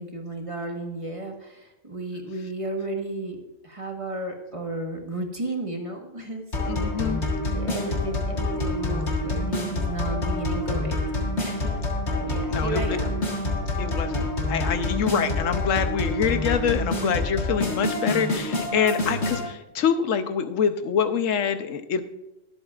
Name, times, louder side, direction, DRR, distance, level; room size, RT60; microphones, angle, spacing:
voice 1, 0.0-7.0 7.5-11.0 11.4-11.8 12.1-13.1, right 2 dB, 25° right, 2 dB, 1.3 m, -33 dB
sound 1, 6.5-19.5, left 2 dB, 60° left, 2.2 m, -27 dB
voice 2, 6.6-7.2 12.5-13.0 13.8-22.0, left 7 dB, 80° left, 10 dB, 1.1 m, -25 dB
23.0 x 8.1 x 2.4 m, 0.94 s
omnidirectional pair, 1.3 m